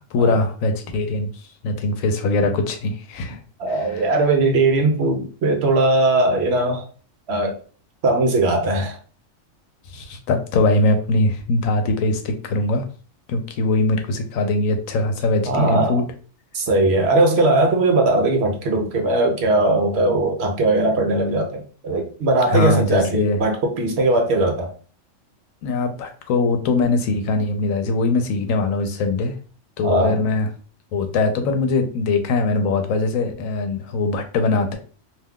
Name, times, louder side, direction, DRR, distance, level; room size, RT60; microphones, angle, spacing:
voice 1, 0.1-3.4 3.9-4.0 9.9-12.8 13.3-16.1 22.5-23.4 25.6-29.3 29.8-30.5 30.9-34.8, left 2 dB, 90° left, 1.0 m, -21 dB
voice 2, 3.6-6.8 7.3-7.6 8.0-9.0 15.5-16.0 16.5-24.7 29.8-30.2, right 2 dB, 60° right, 0.8 m, -19 dB
2.6 x 2.2 x 3.4 m
omnidirectional pair, 1.4 m